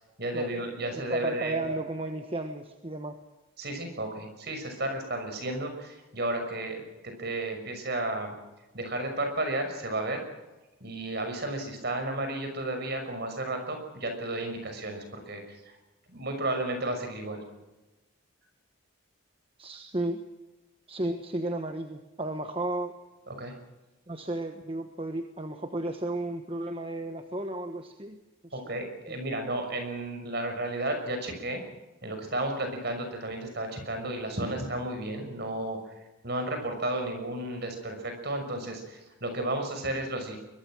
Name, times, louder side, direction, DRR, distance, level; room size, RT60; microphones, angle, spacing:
voice 1, 0.2-1.8 2.2-2.3 3.6-8.4 8.7-10.2 10.8-15.8 16.1-17.4 23.3-23.6 28.5-31.6 32.0-35.8 36.2-40.4, right 1 dB, 50° right, 5 dB, 6.0 m, -33 dB
voice 2, 1.1-3.2 19.6-20.3 20.9-22.9 24.1-28.2 28.4-28.6 29.1-29.2, right 2 dB, 25° right, 6 dB, 1.3 m, -33 dB
22.5 x 22.0 x 6.4 m, 1.1 s
head